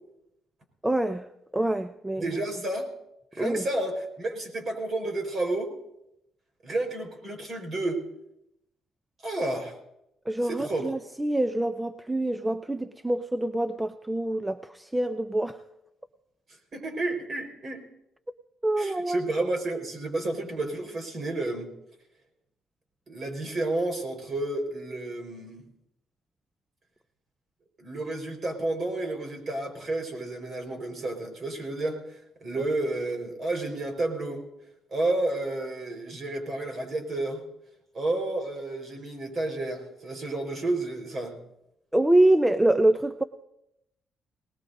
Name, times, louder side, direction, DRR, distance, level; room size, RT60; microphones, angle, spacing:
voice 1, 0.8-2.2 3.4-3.6 10.3-15.6 18.6-19.2 32.6-32.7 41.9-43.2, right 1 dB, 10° right, 10 dB, 0.6 m, -25 dB
voice 2, 2.2-2.9 3.3-5.7 6.6-8.1 9.2-9.7 10.4-10.9 16.7-17.8 18.8-21.7 23.1-25.6 27.8-34.4 34.9-37.4 37.9-41.4, right 2 dB, 45° right, 3 dB, 4.7 m, -31 dB
24.0 x 19.0 x 2.7 m, 0.84 s
cardioid pair, 90°, 0 cm